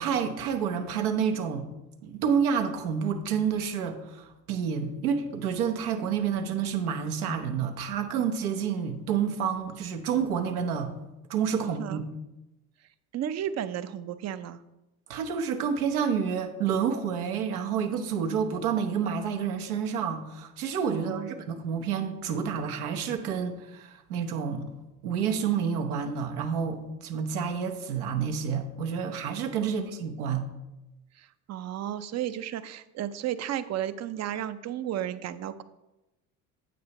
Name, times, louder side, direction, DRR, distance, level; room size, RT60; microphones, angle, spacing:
voice 1, 0.0-1.6 2.0-10.9 11.3-12.0 15.1-24.7 25.0-30.5, right 7 dB, 80° right, 5 dB, 1.1 m, -29 dB
voice 2, 11.6-12.0 13.1-14.6 20.9-21.3 29.6-29.8 31.2-35.6, right 11 dB, 40° right, 14 dB, 0.6 m, -33 dB
9.2 x 7.9 x 3.0 m, 0.98 s
hypercardioid pair, 70°, 44 cm